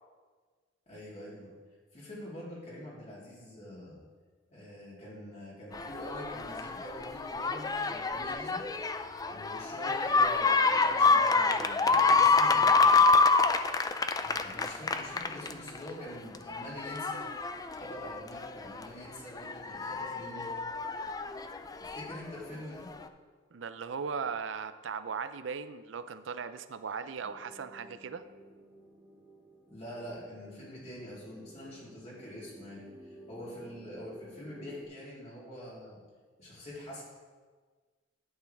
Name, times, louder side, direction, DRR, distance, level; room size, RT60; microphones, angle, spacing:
voice 1, 0.9-1.5 1.9-4.0 4.5-8.6 9.3-13.1 14.2-17.3 17.7-20.6 21.8-22.9 29.7-36.0 36.4-37.0, equal, 40° left, -6 dB, 3.2 m, -45 dB
sound 1, 5.7-15.9 16.3-18.9 19.4-22.2 23.0-23.1, left 4 dB, 20° left, 0.4 m, -27 dB
voice 2, 23.5-28.3, right 6 dB, 75° right, 12 dB, 0.5 m, -38 dB
sound 2, 27.2-34.9, right 1 dB, 10° right, 1.4 m, -53 dB
11.5 x 8.6 x 3.5 m, 1.5 s
head